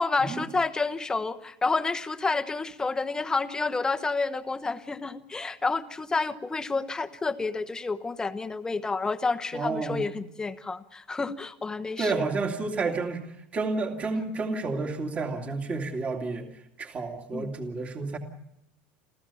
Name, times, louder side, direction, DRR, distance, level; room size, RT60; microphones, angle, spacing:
voice 1, 0.0-12.2 14.2-14.3 17.3-17.5, left 3 dB, 15° left, 11 dB, 1.0 m, -29 dB
voice 2, 9.5-10.1 12.0-13.2 13.5-16.4 16.8-18.2, right 3 dB, 25° right, 3 dB, 2.4 m, -30 dB
29.0 x 14.5 x 7.0 m, 0.80 s
supercardioid pair, 135°, 5 cm